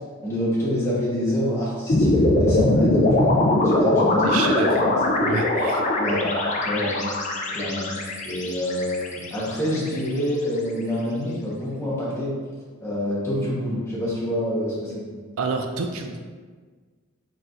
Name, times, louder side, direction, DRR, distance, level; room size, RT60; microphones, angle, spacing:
voice 1, 0.2-3.4 3.6-4.5 6.0-7.0 7.5-7.9 8.2-12.3 12.8-15.1, equal, 10° left, -8 dB, 1.2 m, -27 dB
sound 1, 1.9-10.2, left 1 dB, 30° left, 0.5 m, -21 dB
voice 2, 4.2-4.8 5.2-6.0 15.4-16.2, right 4 dB, 70° right, 4 dB, 0.4 m, -28 dB
4.5 x 4.4 x 2.6 m, 1.5 s
head